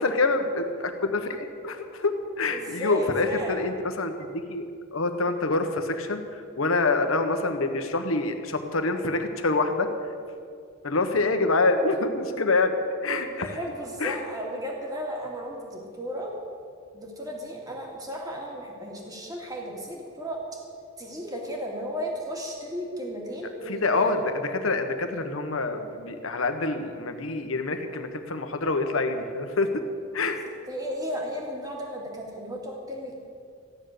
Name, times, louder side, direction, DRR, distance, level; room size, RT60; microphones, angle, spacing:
voice 1, 0.0-9.9 10.8-12.7 13.0-13.6 14.0-14.2 23.7-29.8 30.1-30.4, left 3 dB, 75° left, 6 dB, 1.3 m, -26 dB
voice 2, 2.5-3.7 13.3-16.3 16.9-20.6 21.0-24.1 30.7-33.1, equal, 20° right, -1 dB, 2.4 m, -34 dB
15.0 x 10.0 x 6.7 m, 2.3 s
head